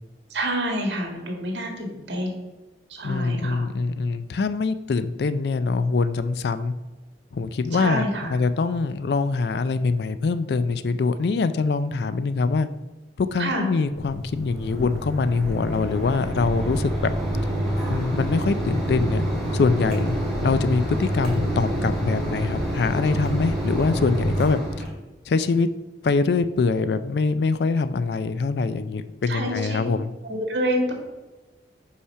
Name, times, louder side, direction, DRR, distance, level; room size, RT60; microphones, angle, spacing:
voice 1, 0.3-2.4 2.9-3.7 7.7-8.3 13.4-13.7 29.3-29.8 30.2-30.9, equal, 85° right, 2 dB, 1.7 m, -27 dB
voice 2, 3.0-6.7 7.3-8.0 8.3-12.7 13.2-17.1 17.9-19.2 19.5-20.2 20.4-24.6 25.3-25.7 26.0-30.1, left 4 dB, 65° left, 12 dB, 0.4 m, -23 dB
Mechanisms, 13.9-24.9, equal, 5° left, 2.1 m, -27 dB
5.6 x 4.9 x 5.6 m, 1.2 s
head